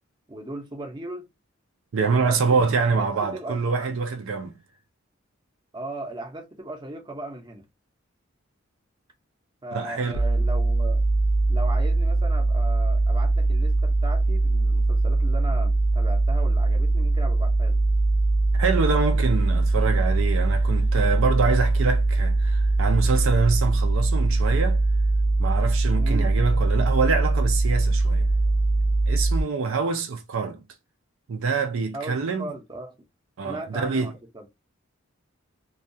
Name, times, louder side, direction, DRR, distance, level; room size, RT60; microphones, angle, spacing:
voice 1, 0.3-1.3 2.2-3.6 5.7-7.6 9.6-11.0 11.5-17.8 26.0-26.4 31.9-33.0 33.4-34.5, right 1 dB, 20° right, 0.6 m, -37 dB
voice 2, 1.9-4.6 9.7-10.2 18.6-24.8 25.4-28.3 29.1-30.6 31.3-32.5 33.4-34.1, right 4 dB, 70° right, 0.4 m, -25 dB
sound 1, 10.1-29.4, right 2 dB, 55° left, 0.5 m, -21 dB
2.3 x 2.2 x 2.6 m
head